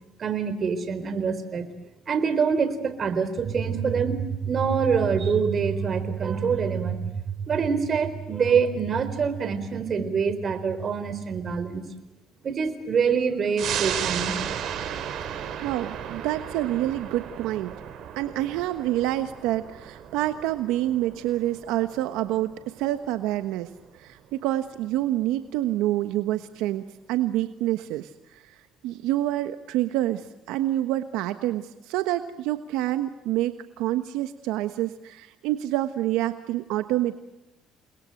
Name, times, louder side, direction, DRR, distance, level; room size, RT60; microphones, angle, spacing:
voice 1, 0.2-1.7 2.1-7.1 7.5-11.9 12.4-14.4, right 6 dB, 45° right, 11 dB, 4.2 m, -25 dB
sound 1, 13.6-24.5 24.9-25.0, right 9 dB, 65° right, 4.5 m, -35 dB
voice 2, 15.6-17.8 18.2-28.6 28.8-37.2, right 14 dB, 85° right, 10 dB, 1.2 m, -27 dB
30.0 x 21.0 x 7.8 m, 1.0 s
cardioid pair, 90°, 0 cm